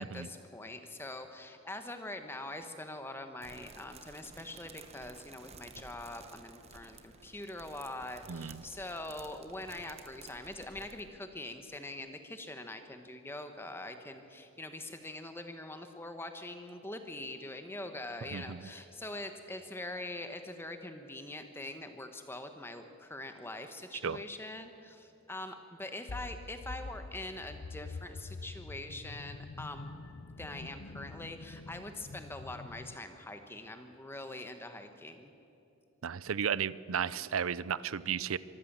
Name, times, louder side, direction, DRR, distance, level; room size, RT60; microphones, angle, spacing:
voice 1, 0.0-29.9 30.4-35.3, left 2 dB, 10° left, 7 dB, 1.1 m, -43 dB
sound 1, 3.4-11.0, right 4 dB, 30° right, 1.0 m, -54 dB
voice 2, 8.3-8.6 18.3-18.7 24.0-24.2 36.0-38.4, right 7 dB, 80° right, 19 dB, 0.5 m, -34 dB
sound 2, 26.1-33.0, left 3 dB, 60° left, 0.6 m, -46 dB
24.5 x 14.5 x 7.4 m, 2.9 s
head